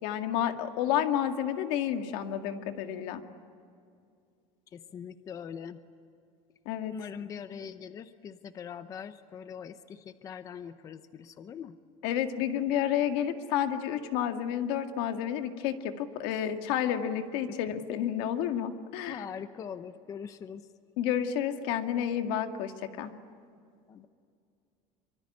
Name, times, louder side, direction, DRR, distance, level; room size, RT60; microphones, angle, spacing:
voice 1, 0.0-3.2 6.7-6.9 12.0-19.2 21.0-22.7 23.0-23.1, left 10 dB, 80° left, 6 dB, 2.0 m, -30 dB
voice 2, 4.7-5.8 6.9-11.8 16.3-16.4 19.1-20.7 23.9-24.1, left 7 dB, 25° left, 11 dB, 0.7 m, -42 dB
25.0 x 24.5 x 9.8 m, 2.4 s
cardioid pair, 175°, 13 cm